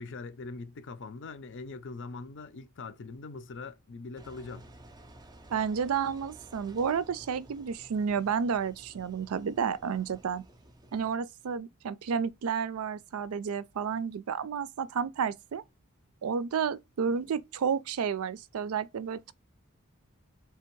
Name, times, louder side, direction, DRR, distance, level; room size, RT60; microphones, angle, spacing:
voice 1, 0.0-4.7, left 3 dB, 60° left, 0.6 m, -42 dB
Engine, 4.2-11.2, right 1 dB, 20° right, 0.5 m, -53 dB
voice 2, 5.5-10.4 10.9-15.6 16.2-19.3, right 6 dB, 75° right, 0.4 m, -31 dB
3.4 x 3.3 x 4.5 m
head